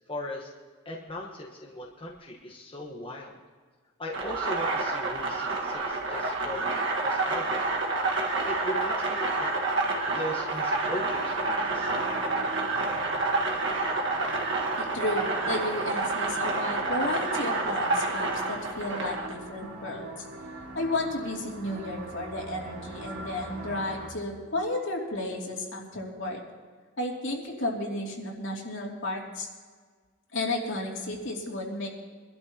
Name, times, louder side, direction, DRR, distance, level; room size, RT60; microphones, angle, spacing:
voice 1, 0.1-0.5 0.8-3.4 4.0-7.8 8.5-9.6 10.0-11.9, left 1 dB, 25° left, -3 dB, 1.2 m, -38 dB
sound 1, 4.1-19.3, right 3 dB, 60° right, 1.6 m, -28 dB
sound 2, 10.8-24.1, right 2 dB, 75° right, 2.7 m, -43 dB
voice 2, 14.8-20.1 20.7-26.4 27.0-29.5 30.3-31.9, left 1 dB, 65° left, -2 dB, 2.8 m, -33 dB
23.5 x 12.5 x 2.9 m, 1.5 s
head